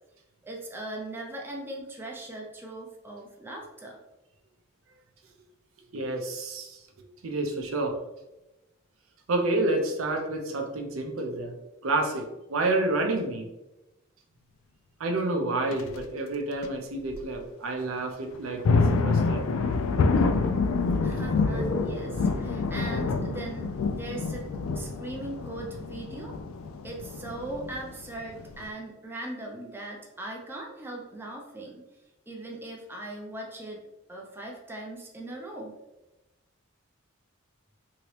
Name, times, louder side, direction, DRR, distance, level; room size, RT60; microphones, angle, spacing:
voice 1, 0.4-4.0 21.0-26.4 26.8-31.8 32.3-33.8 34.1-35.8, right 1 dB, 10° right, -2 dB, 0.4 m, -39 dB
voice 2, 5.9-6.8 7.2-8.0 9.3-11.5 11.8-13.5 15.0-19.4 22.0-22.2, right 2 dB, 75° right, 3 dB, 0.6 m, -29 dB
sound 1, 15.7-16.0 16.6-16.7 17.1-17.2 18.3-28.7, left 4 dB, 75° left, 0.3 m, -27 dB
sound 2, 20.8-24.4, equal, 40° left, 0.7 m, -39 dB
2.9 x 2.7 x 3.1 m, 1.0 s
head